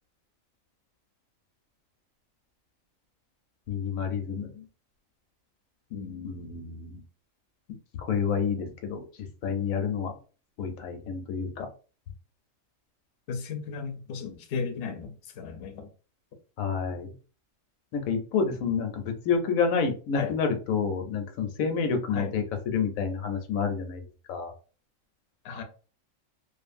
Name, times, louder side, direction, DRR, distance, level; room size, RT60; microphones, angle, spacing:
voice 1, 3.7-4.6 6.2-7.0 8.1-9.0 9.4-10.1 10.6-11.7 16.6-17.1 17.9-24.0 24.3-24.5, left 6 dB, 85° left, 1.0 m, -29 dB
voice 2, 5.9-6.4 7.7-7.8 13.3-15.9 18.6-18.7 20.1-20.3 22.1-22.3 25.4-25.6, left 5 dB, 60° left, 0.7 m, -35 dB
2.5 x 2.5 x 2.5 m
omnidirectional pair, 1.4 m